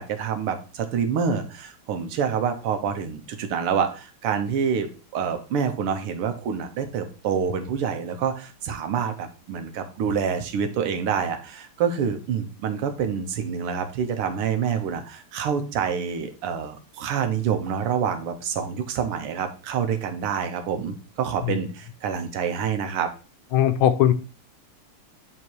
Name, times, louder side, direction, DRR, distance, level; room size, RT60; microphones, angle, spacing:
voice 1, 0.0-4.9 5.1-23.1, right 7 dB, 85° right, 7 dB, 1.9 m, -27 dB
voice 2, 23.5-24.1, left 11 dB, 75° left, 10 dB, 1.5 m, -19 dB
9.5 x 3.7 x 4.6 m, 0.36 s
omnidirectional pair, 2.4 m